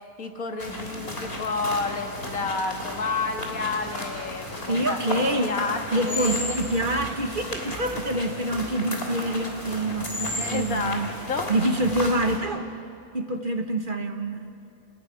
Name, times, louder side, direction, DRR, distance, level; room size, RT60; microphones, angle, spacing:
voice 1, 0.2-5.8 6.1-6.6 10.2-11.0 11.3-11.5, left 4 dB, 70° left, 4 dB, 2.0 m, -30 dB
sound 1, 0.6-12.4, left 1 dB, 40° left, 3.5 m, -34 dB
voice 2, 4.7-5.5 5.9-11.1 11.5-12.7 13.1-14.5, right 1 dB, 35° right, 5 dB, 1.4 m, -26 dB
28.0 x 15.5 x 9.7 m, 2.5 s
omnidirectional pair, 1.5 m